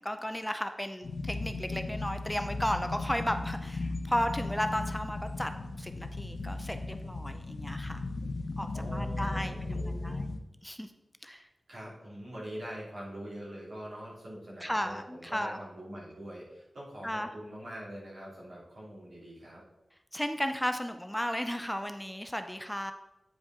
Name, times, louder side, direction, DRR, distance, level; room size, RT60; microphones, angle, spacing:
voice 1, 0.0-8.1 8.6-10.4 10.6-10.9 11.2-11.5 14.6-15.6 17.0-17.3 20.1-22.9, equal, 5° left, 7 dB, 0.5 m, -34 dB
sound 1, 1.0-10.4, left 2 dB, 80° left, 0.6 m, -36 dB
voice 2, 8.7-10.2 11.7-19.6, equal, 80° right, -6 dB, 2.8 m, -43 dB
9.2 x 5.1 x 3.7 m, 0.94 s
wide cardioid pair, 70°, 0 cm